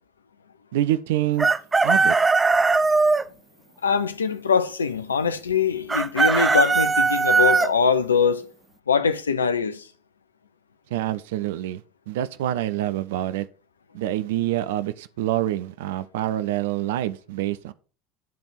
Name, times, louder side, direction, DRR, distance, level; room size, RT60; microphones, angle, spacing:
voice 1, 0.7-1.5 1.8-2.2 10.9-11.8 12.1-13.5 13.9-17.7, right 13 dB, 70° right, 0.5 m, -26 dB
Chicken rooster, 1.4-3.2 5.9-7.7, right 4 dB, 20° right, 0.5 m, -19 dB
voice 2, 3.8-8.5 8.9-9.8, left 6 dB, 85° left, 0.6 m, -22 dB
10.5 x 3.5 x 5.8 m
figure-of-eight pair, 70°, 0 cm